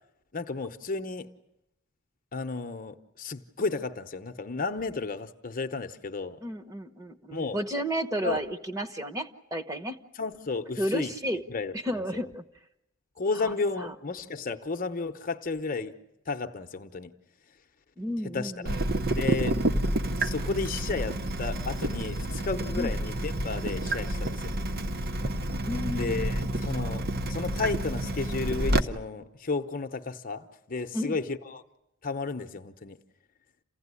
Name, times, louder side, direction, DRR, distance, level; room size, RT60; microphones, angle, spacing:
voice 1, 0.3-1.3 2.3-6.4 7.3-7.6 8.2-8.4 10.2-11.1 11.5-11.7 13.2-16.0 16.3-17.1 18.3-18.7 19.1-19.6 20.2-24.6 25.9-31.6 32.0-33.0, left 4 dB, 40° left, 0.9 m, -33 dB
voice 2, 6.4-10.0 10.8-11.4 11.7-12.4 13.4-13.9 18.0-18.8 22.7-22.9 25.6-26.3 30.9-31.2, equal, 15° right, 1.1 m, -32 dB
Water tap faucet / Drip, 18.6-28.8, right 1 dB, 45° right, 0.9 m, -29 dB
28.5 x 16.0 x 9.8 m
head